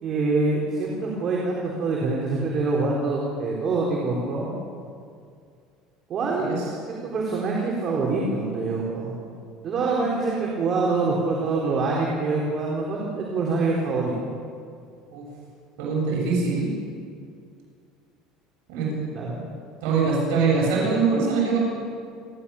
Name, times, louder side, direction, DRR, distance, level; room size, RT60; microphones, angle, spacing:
voice 1, 0.0-4.5 6.1-6.5 6.9-9.1 9.6-14.1 19.1-19.4, right 3 dB, 40° right, -3 dB, 4.1 m, -25 dB
voice 2, 15.8-16.7 18.7-18.9 19.8-21.6, right 4 dB, 80° right, -4 dB, 7.8 m, -23 dB
30.0 x 13.0 x 7.2 m, 2.3 s
cardioid pair, 130°, 0 cm